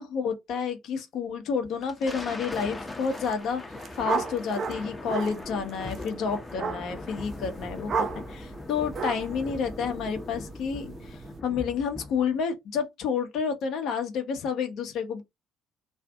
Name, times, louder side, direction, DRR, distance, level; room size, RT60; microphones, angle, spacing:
voice 1, 0.0-3.6 3.9-15.2, left 6 dB, 55° left, 0.7 m, -30 dB
Thunder, 1.6-12.4, left 2 dB, 15° left, 0.6 m, -40 dB
sound 1, 3.0-3.3 3.6-11.4, right 5 dB, 45° right, 0.4 m, -35 dB
2.5 x 2.4 x 2.2 m
figure-of-eight pair, 50°, 0 cm